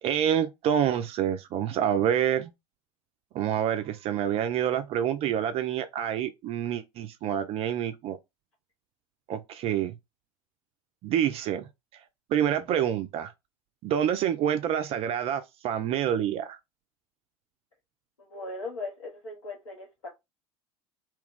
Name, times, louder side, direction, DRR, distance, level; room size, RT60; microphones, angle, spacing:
voice 1, 0.0-2.5 3.3-8.2 9.3-10.0 11.0-11.7 12.3-13.3 13.8-16.6, right 9 dB, 35° right, 0.4 m, -27 dB
voice 2, 18.2-20.1, left 3 dB, 75° left, 1.0 m, -38 dB
2.9 x 2.3 x 3.5 m
figure-of-eight pair, 75°, 18 cm